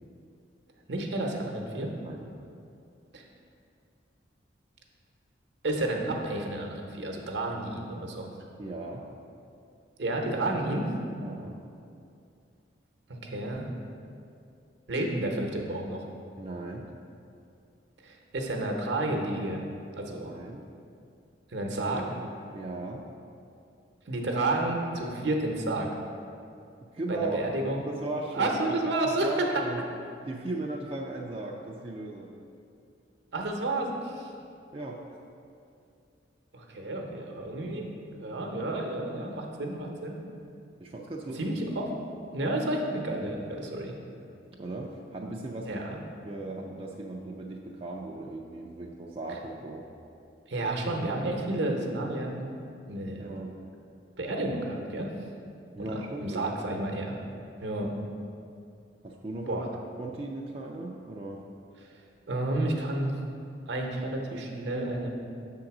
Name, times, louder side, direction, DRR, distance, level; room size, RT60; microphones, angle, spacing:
voice 1, 0.9-1.9 3.1-3.2 5.6-8.3 10.0-10.9 13.1-13.7 14.9-16.1 18.0-19.6 20.0-20.3 21.5-22.1 24.1-25.9 27.1-27.8 28.3-29.5 33.3-34.3 36.5-37.9 38.2-40.2 41.4-41.9 42.3-44.0 45.6-46.0 50.5-52.4 52.9-53.3 54.2-55.1 55.8-57.2 57.6-58.0 59.5-59.7 62.3-63.1 63.7-65.1, right 2 dB, 70° right, 1 dB, 0.9 m, -31 dB
voice 2, 8.6-9.1 11.2-11.6 16.4-16.9 20.0-20.7 22.5-23.1 26.8-27.4 27.9-28.6 29.2-29.8 30.2-32.4 34.7-35.0 40.8-41.6 41.9-42.0 44.6-45.9 46.2-49.9 53.2-53.5 55.7-56.8 59.0-59.7 60.0-61.4, right 2 dB, 30° right, -1 dB, 0.4 m, -37 dB
6.9 x 3.8 x 5.9 m, 2.5 s
head